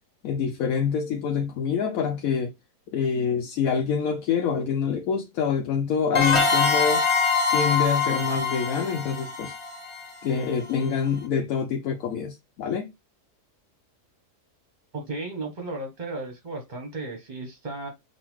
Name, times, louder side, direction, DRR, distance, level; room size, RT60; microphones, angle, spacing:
voice 1, 0.2-2.5 2.9-7.0 7.5-9.5 10.2-12.9, left 6 dB, 70° left, 0.9 m, -26 dB
sound 1, 6.1-10.7, left 4 dB, 25° left, 0.8 m, -24 dB
voice 2, 14.9-17.9, right 2 dB, 35° right, 0.8 m, -34 dB
5.5 x 2.5 x 3.0 m
omnidirectional pair, 1.8 m